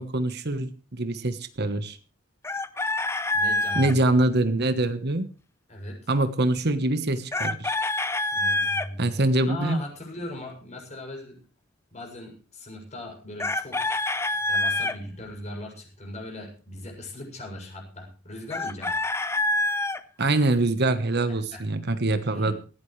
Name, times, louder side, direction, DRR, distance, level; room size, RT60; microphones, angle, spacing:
voice 1, 0.0-2.0 3.7-5.3 6.1-7.7 9.0-9.8 20.2-22.5, right 2 dB, 55° right, 10 dB, 1.3 m, -24 dB
Chicken rooster, 2.4-3.9 7.3-8.9 13.4-15.0 18.5-20.0, left 2 dB, 15° left, 0.8 m, -26 dB
voice 2, 3.3-4.2 5.7-6.1 8.3-9.1 9.5-11.4 11.9-14.0 14.5-19.0 21.3-21.6 22.3-22.6, left 1 dB, 35° left, 1 dB, 7.2 m, -39 dB
19.0 x 16.0 x 3.3 m, 0.36 s
head